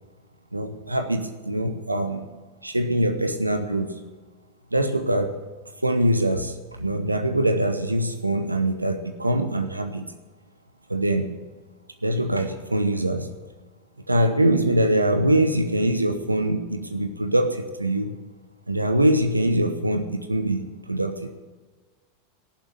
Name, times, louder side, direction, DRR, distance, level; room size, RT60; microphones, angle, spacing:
voice 1, 0.5-2.3 2.6-4.0 4.7-5.4 5.8-10.1 10.9-11.4 12.0-13.3 14.1-18.1 18.7-21.3, right 1 dB, 90° right, 8 dB, 0.9 m, -23 dB
17.5 x 7.3 x 9.0 m, 1.4 s
figure-of-eight pair, 85°, 0 cm